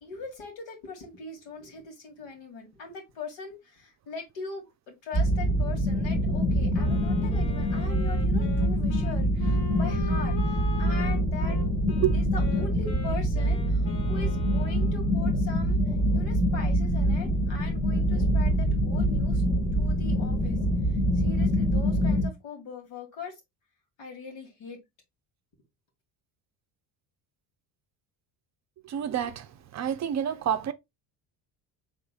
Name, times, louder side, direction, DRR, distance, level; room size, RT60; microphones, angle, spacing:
voice 1, 0.0-11.6 12.1-19.4 19.8-20.6 20.8-23.3 24.0-24.8, left 4 dB, 85° left, 2.1 m, -41 dB
sound 1, 5.1-22.3, equal, 15° left, 0.9 m, -25 dB
Wind instrument woodwind instrument, 6.7-15.2, left 6 dB, 60° left, 1.6 m, -42 dB
voice 2, 28.8-29.5 29.7-30.7, right 10 dB, 40° right, 0.5 m, -28 dB
4.8 x 3.6 x 2.3 m
cardioid pair, 130°, 44 cm